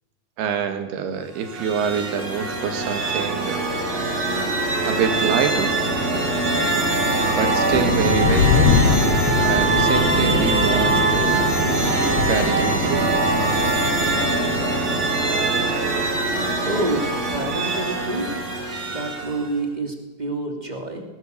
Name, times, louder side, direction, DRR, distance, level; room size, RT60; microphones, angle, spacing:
voice 1, 0.4-3.8 4.9-5.7 7.3-8.7 9.4-11.5 12.3-13.1, right 7 dB, 85° right, 7 dB, 3.8 m, -25 dB
sound 1, 1.3-19.5, right 2 dB, 40° right, 4.3 m, -22 dB
sound 2, 7.7-14.8, left 7 dB, 80° left, 1.3 m, -24 dB
voice 2, 16.6-18.5 18.9-21.0, right 2 dB, 15° right, 3 dB, 2.4 m, -28 dB
20.0 x 19.5 x 6.7 m, 1.1 s
omnidirectional pair, 4.5 m